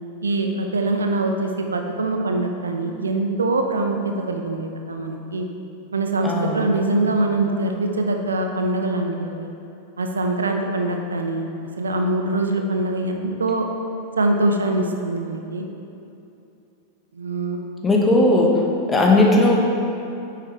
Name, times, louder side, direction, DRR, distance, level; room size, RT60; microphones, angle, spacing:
voice 1, 0.2-4.0 4.3-5.5 5.9-9.5 10.0-11.5 11.8-13.7 14.2-15.6 17.1-17.6, right 2 dB, 75° right, 4 dB, 0.6 m, -23 dB
voice 2, 6.2-6.9 17.8-18.6 18.9-19.6, left 2 dB, 15° left, -1 dB, 1.3 m, -17 dB
9.5 x 7.6 x 3.3 m, 2.7 s
figure-of-eight pair, 90°, 0 cm